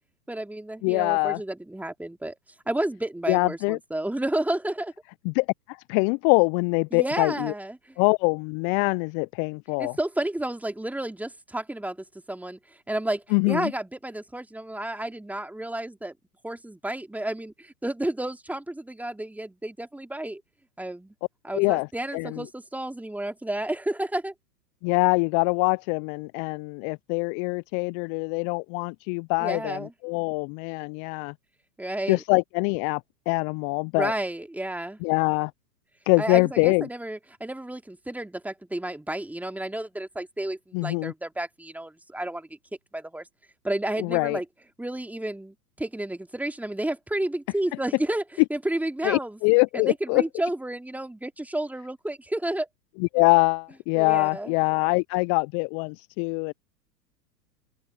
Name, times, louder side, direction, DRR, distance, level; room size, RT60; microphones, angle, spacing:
voice 1, 0.3-2.4 2.7-4.9 6.9-8.0 9.8-12.0 12.3-12.6 12.9-16.1 16.4-20.4 20.8-21.1 21.4-24.3 29.4-29.9 31.8-32.2 34.0-35.0 36.2-42.5 42.9-43.3 43.6-44.4 44.8-48.2 48.5-49.4 49.7-52.7 53.9-54.5, right 1 dB, 5° right, 3.0 m, -31 dB
voice 2, 0.8-1.4 3.3-3.8 5.2-7.5 8.0-10.0 13.3-13.7 21.5-21.9 22.1-22.5 24.8-31.3 32.1-33.0 33.3-34.1 35.0-35.5 36.1-36.9 40.7-41.1 44.0-44.4 49.0-50.2 53.0-56.5, left 35 dB, 25° left, 0.5 m, -24 dB
open air
figure-of-eight pair, 105°, 49 cm